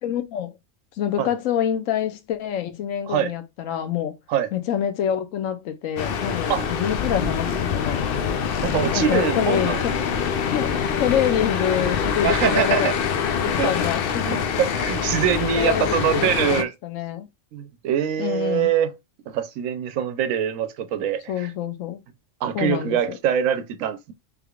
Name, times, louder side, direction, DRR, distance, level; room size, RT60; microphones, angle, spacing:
voice 1, 0.0-0.5 1.0-4.2 4.5-8.0 9.0-9.9 10.5-12.9 13.4-14.4 15.5-17.3 18.2-18.7 21.3-22.0 22.5-23.2, left 10 dB, 85° left, 1.0 m, -26 dB
sound 1, 6.0-16.6, left 7 dB, 60° left, 0.6 m, -25 dB
voice 2, 8.6-9.8 12.2-12.9 13.5-13.7 14.3-16.7 17.5-18.9 19.3-21.5 22.4-24.1, right 9 dB, 90° right, 1.0 m, -24 dB
3.5 x 3.4 x 2.3 m
omnidirectional pair, 1.3 m